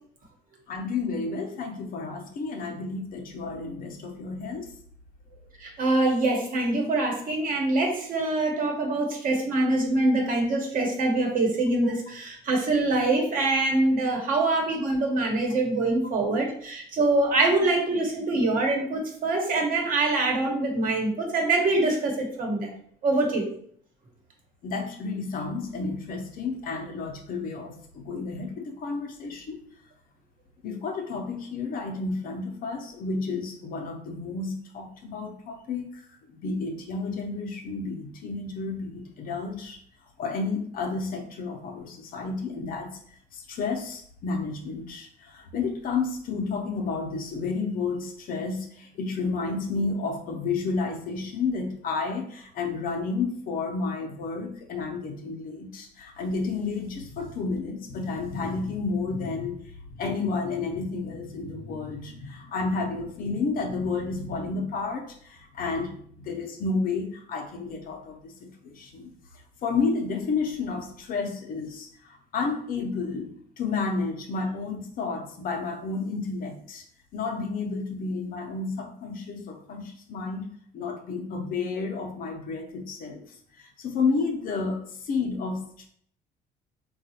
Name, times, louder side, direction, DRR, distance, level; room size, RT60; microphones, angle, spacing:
voice 1, 0.7-4.7 14.2-14.4 24.6-29.6 30.6-36.0 36.3-39.8 40.2-42.9 43.3-59.6 59.9-69.1 69.6-76.8 77.1-80.5 80.7-83.2 83.6-85.9, left 4 dB, 60° left, 3 dB, 0.7 m, -31 dB
voice 2, 5.6-22.7 23.0-23.5, right 2 dB, 55° right, 0 dB, 1.0 m, -24 dB
3.7 x 2.3 x 2.8 m, 0.62 s
cardioid pair, 110°, 17 cm